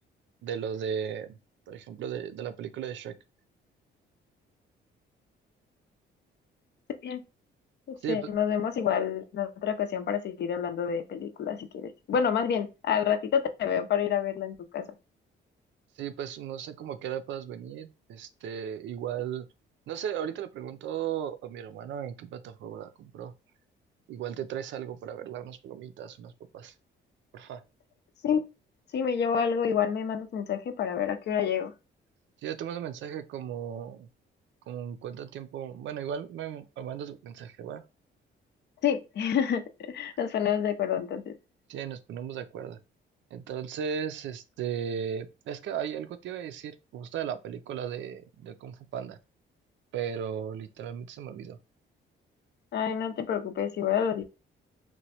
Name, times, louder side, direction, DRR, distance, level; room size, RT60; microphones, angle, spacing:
voice 1, 0.4-1.4 1.7-3.1 8.0-8.3 16.0-19.5 19.9-23.3 24.1-26.7 27.3-27.6 32.4-34.1 34.7-37.8 41.7-42.8 43.3-49.2 49.9-51.6, right 8 dB, 70° right, 0.4 m, -36 dB
voice 2, 8.1-14.8 28.2-28.4 28.9-31.7 38.8-39.6 39.9-41.3 52.7-54.2, left 8 dB, 60° left, 0.5 m, -28 dB
3.0 x 2.1 x 2.8 m
cardioid pair, 90°, 20 cm